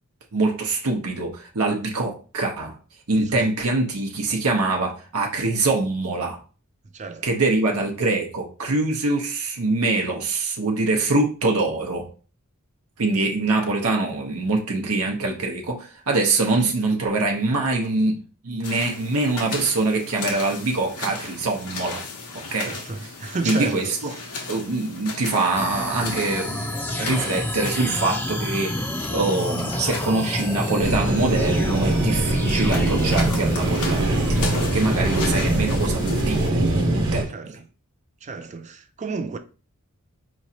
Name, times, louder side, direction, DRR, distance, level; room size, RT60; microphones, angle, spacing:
voice 1, 0.3-2.8 3.1-6.4 7.2-12.1 13.0-18.2 18.4-22.0 22.3-23.1 23.4-24.1 24.5-36.6 36.9-37.6, right 2 dB, 70° right, 0.8 m, -24 dB
voice 2, 6.9-7.3 16.5-16.6 22.6-23.9 37.3-37.6 38.2-39.4, right 4 dB, 30° right, 0.4 m, -31 dB
sound 1, 18.6-36.5, left 3 dB, 90° left, 1.1 m, -36 dB
sound 2, 25.6-35.8, left 1 dB, 10° left, 0.8 m, -30 dB
sound 3, 30.8-37.2, right 2 dB, 55° right, 1.2 m, -22 dB
4.9 x 3.1 x 2.8 m
head